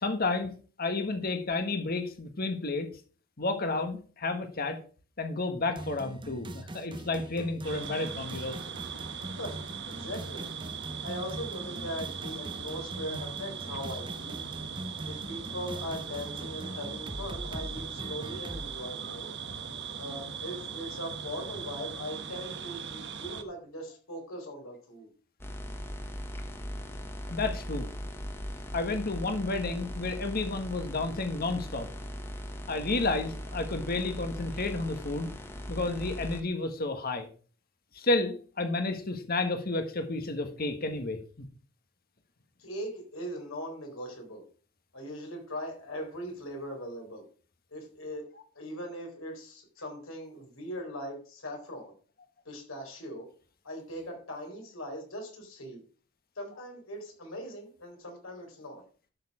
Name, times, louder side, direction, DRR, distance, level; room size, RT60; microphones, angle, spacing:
voice 1, 0.0-0.5 0.8-2.9 3.4-4.8 5.2-8.6 27.3-27.9 28.7-31.9 32.7-35.3 35.7-37.3 37.9-41.5, left 3 dB, 45° left, 7 dB, 1.4 m, -31 dB
sound 1, 5.8-18.7, right 1 dB, 25° right, 0.8 m, -42 dB
sound 2, 7.6-23.4, right 6 dB, 55° right, 1.2 m, -39 dB
voice 2, 9.9-10.5 11.0-14.4 15.0-19.3 20.0-25.1 42.6-44.4 44.9-47.2 47.7-48.2 48.6-51.9 52.4-53.3 53.6-55.8 56.4-58.8, equal, 70° left, 2 dB, 4.2 m, -40 dB
sound 3, 25.4-36.4, equal, 10° left, 1.2 m, -39 dB
11.5 x 6.7 x 4.9 m, 0.41 s
head